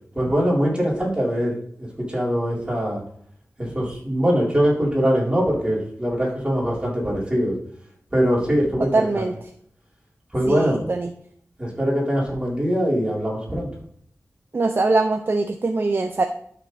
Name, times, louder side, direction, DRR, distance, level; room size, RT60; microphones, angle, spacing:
voice 1, 0.1-1.6 2.0-3.0 3.6-7.6 8.1-9.3 10.3-10.8 11.6-13.7, equal, 20° right, -5 dB, 4.3 m, -22 dB
voice 2, 8.9-9.3 10.5-11.1 14.5-16.2, right 3 dB, 45° right, 5 dB, 0.6 m, -22 dB
12.5 x 6.2 x 3.5 m, 0.65 s
wide cardioid pair, 95°, 5 cm